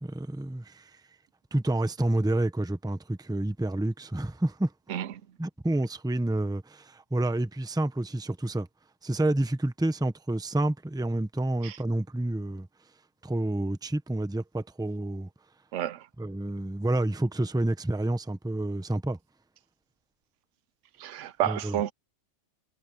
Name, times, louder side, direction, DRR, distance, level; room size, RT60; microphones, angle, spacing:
voice 1, 0.0-0.9 1.5-4.7 5.4-8.7 9.0-12.7 13.2-15.3 16.2-19.2 21.4-21.8, right 1 dB, 5° right, 0.7 m, -29 dB
voice 2, 15.7-16.1 21.0-21.9, right 11 dB, 80° right, 0.9 m, -30 dB
omnidirectional pair, 1.3 m